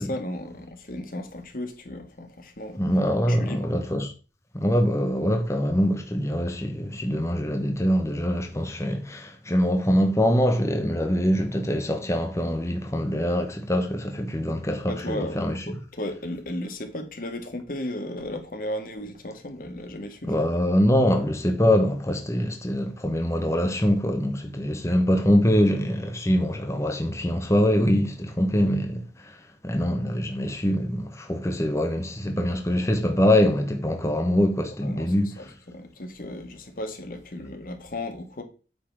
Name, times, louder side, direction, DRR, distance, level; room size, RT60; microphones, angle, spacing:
voice 1, 0.0-2.8 3.3-3.7 14.7-20.3 34.8-35.1 35.4-38.4, left 1 dB, 50° left, 1.5 m, -35 dB
voice 2, 2.8-4.1 4.5-15.7 20.2-35.5, equal, 15° left, 0.9 m, -24 dB
8.6 x 4.0 x 6.1 m
head